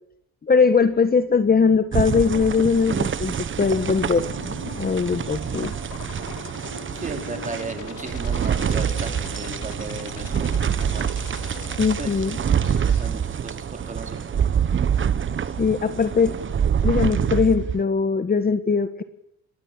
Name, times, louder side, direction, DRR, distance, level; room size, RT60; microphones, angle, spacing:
voice 1, 0.4-4.3 4.6-5.7 11.8-12.4 15.6-16.3 16.8-19.0, left 5 dB, 30° left, 11 dB, 1.4 m, -20 dB
sound 1, 1.9-17.8, right 8 dB, 40° right, 1.1 m, -26 dB
sound 2, 3.7-13.1, left 7 dB, 85° left, 2.6 m, -41 dB
voice 2, 6.9-11.3 12.0-12.2 13.0-14.2, right 3 dB, 25° right, 5 dB, 4.5 m, -35 dB
28.0 x 13.0 x 8.8 m, 0.79 s
cardioid pair, 90°, 30 cm